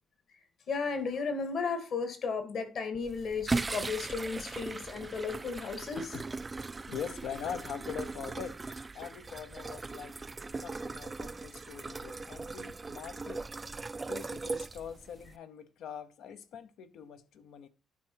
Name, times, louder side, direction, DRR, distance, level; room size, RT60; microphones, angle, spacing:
voice 1, 0.7-6.1, left 5 dB, 65° left, 1.9 m, -34 dB
sound 1, 3.0-15.4, right 3 dB, 25° right, 0.3 m, -39 dB
voice 2, 6.8-8.6 8.9-10.2 10.6-13.5 14.1-17.7, left 8 dB, 80° left, 0.8 m, -43 dB
11.0 x 4.5 x 4.5 m
cardioid pair, 90°, 0 cm